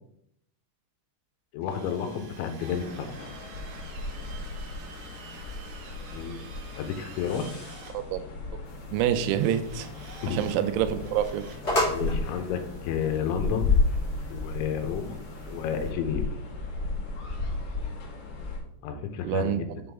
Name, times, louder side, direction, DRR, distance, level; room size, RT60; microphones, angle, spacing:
voice 1, 1.5-3.2 6.1-6.4 6.8-7.5 10.2-10.5 11.9-13.7 14.3-15.2 15.5-16.2 18.8-19.7, left 7 dB, 90° left, 7 dB, 3.0 m, -31 dB
Drill, 1.6-7.9 9.3-10.6 11.0-12.0, right 5 dB, 70° right, 1.9 m, -48 dB
sound 1, 2.6-18.6, left 3 dB, 65° left, 2.3 m, -34 dB
sound 2, 8.6-15.9, left 1 dB, 35° left, 1.0 m, -36 dB
voice 2, 8.9-9.9 10.3-11.4 19.2-19.8, right 10 dB, 90° right, 10 dB, 3.0 m, -27 dB
7.7 x 3.9 x 3.5 m, 0.74 s
omnidirectional pair, 5.4 m